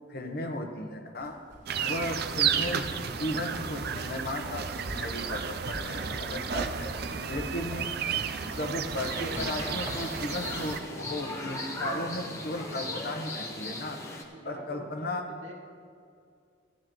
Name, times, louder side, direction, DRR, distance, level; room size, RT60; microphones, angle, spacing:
voice 1, 0.1-1.4 1.8-6.9 7.3-7.9 8.2-14.0 14.4-15.2, left 1 dB, 45° left, 4 dB, 1.0 m, -35 dB
sound 1, 1.2-10.2 11.1-11.3 12.5-12.6, equal, 15° right, 2.1 m, -45 dB
sound 2, 1.7-10.8, right 7 dB, 50° right, 0.5 m, -32 dB
sound 3, 9.0-14.2, left 1 dB, 15° left, 0.9 m, -37 dB
voice 2, 14.3-15.5, right 1 dB, 75° right, -2 dB, 1.9 m, -46 dB
16.5 x 10.0 x 3.1 m, 2.3 s
head